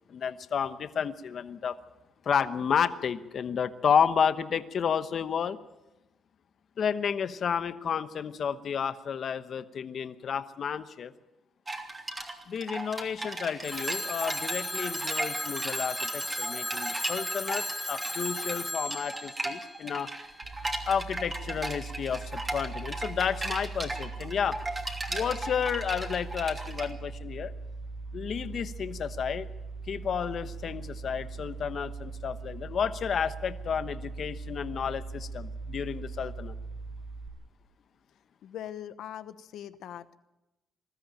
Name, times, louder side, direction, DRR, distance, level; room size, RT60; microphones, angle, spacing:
voice 1, 0.1-1.8 2.2-5.6 6.8-11.1 12.5-20.1 20.9-24.6 25.1-27.5 28.1-29.5 29.9-36.5, left 7 dB, 55° left, 11 dB, 1.0 m, -31 dB
sound 1, 11.7-26.9, right 2 dB, 25° right, 3.0 m, -37 dB
Telephone, 13.6-20.5, left 1 dB, 5° left, 0.6 m, -35 dB
sound 2, 20.4-37.3, right 4 dB, 50° right, 5.0 m, -40 dB
voice 2, 38.4-40.2, left 10 dB, 80° left, 13 dB, 1.0 m, -41 dB
21.0 x 13.5 x 9.0 m, 1.0 s
cardioid pair, 90°, 0 cm